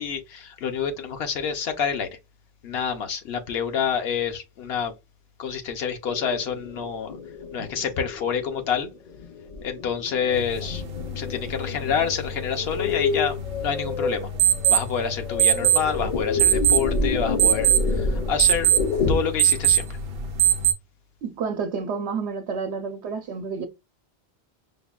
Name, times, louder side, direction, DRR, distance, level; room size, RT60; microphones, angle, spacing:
voice 1, 0.0-2.2 2.6-4.9 5.4-7.1 7.5-8.9 9.6-10.8 11.2-14.3 14.7-18.7 19.1-20.0, left 7 dB, 70° left, 0.9 m, -28 dB
sound 1, 6.1-19.2, left 3 dB, 55° left, 0.5 m, -29 dB
sound 2, 10.3-20.7, right 9 dB, 65° right, 0.7 m, -24 dB
voice 2, 21.2-23.7, right 5 dB, 90° right, 0.9 m, -29 dB
5.2 x 2.1 x 2.3 m
omnidirectional pair, 1.1 m